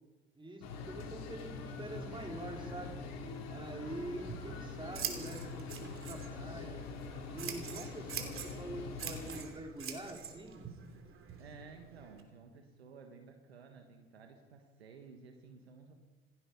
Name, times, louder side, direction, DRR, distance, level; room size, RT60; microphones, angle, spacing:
voice 1, 0.4-3.0 3.5-6.8 7.3-10.7, right 1 dB, 15° right, 2 dB, 4.0 m, -45 dB
sound 1, 0.6-9.4, left 3 dB, 55° left, 3.2 m, -44 dB
Scissors, 4.1-12.2, right 7 dB, 45° right, 3.0 m, -45 dB
voice 2, 11.4-15.9, right 5 dB, 85° right, 4 dB, 1.6 m, -54 dB
27.5 x 9.4 x 5.4 m, 1.2 s
hypercardioid pair, 60°, 31 cm